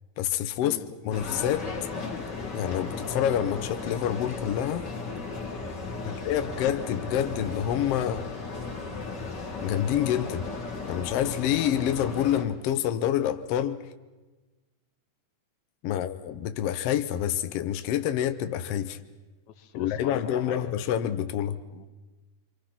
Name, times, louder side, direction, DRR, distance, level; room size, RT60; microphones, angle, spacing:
voice 1, 0.2-1.7 2.5-4.9 6.0-8.3 9.6-10.5 10.9-13.8 15.8-19.0 19.7-21.6, left 10 dB, 85° left, 1.3 m, -27 dB
sound 1, 1.1-12.4, left 3 dB, 35° left, 2.5 m, -35 dB
voice 2, 19.6-20.7 21.7-21.9, left 8 dB, 65° left, 2.3 m, -40 dB
26.5 x 25.5 x 5.9 m
omnidirectional pair, 4.0 m